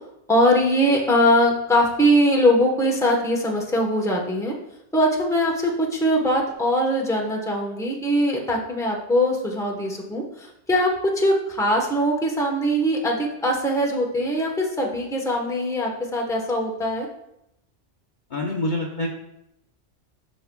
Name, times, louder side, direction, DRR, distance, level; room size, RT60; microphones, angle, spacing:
voice 1, 0.3-4.5 4.9-17.1, equal, 5° left, -1 dB, 1.0 m, -21 dB
voice 2, 18.3-19.1, left 1 dB, 45° left, -1 dB, 0.9 m, -26 dB
9.3 x 5.7 x 2.3 m, 0.82 s
omnidirectional pair, 1.2 m